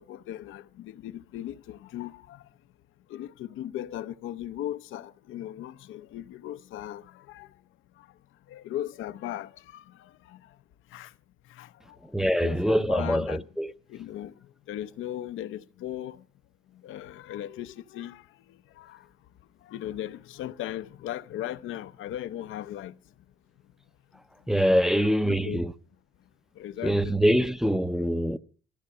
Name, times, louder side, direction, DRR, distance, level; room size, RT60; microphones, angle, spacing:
voice 1, 0.0-2.4 3.1-7.5 8.0-8.1 8.5-10.5 10.9-11.1 11.5-12.0 12.4-13.5 13.9-16.2 16.7-18.3 18.8-19.1 19.6-22.9 24.8-25.6 26.6-27.2, left 12 dB, 85° left, 0.7 m, -38 dB
voice 2, 12.1-13.7 24.5-25.7 26.8-28.4, equal, ahead, 0.6 m, -24 dB
16.0 x 14.0 x 5.5 m
cardioid pair, 90°, 20 cm